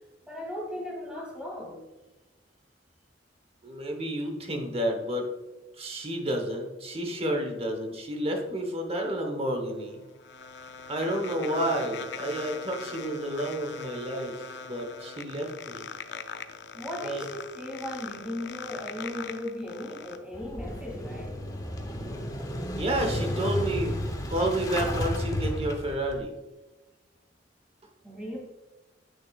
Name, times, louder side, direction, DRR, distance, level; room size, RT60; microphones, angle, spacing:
voice 1, 0.3-1.8 16.7-21.4 28.0-28.4, left 1 dB, 5° right, -3 dB, 2.2 m, -37 dB
voice 2, 3.6-5.3 5.8-10.0 10.9-15.9 17.0-17.3 22.8-24.0 24.3-26.3, right 1 dB, 35° right, 3 dB, 1.0 m, -30 dB
sound 1, 9.7-20.2, left 6 dB, 65° left, 0.5 m, -41 dB
Motorcycle / Engine starting, 20.3-26.2, equal, 20° left, 0.8 m, -32 dB
8.5 x 6.4 x 2.3 m, 1.1 s
head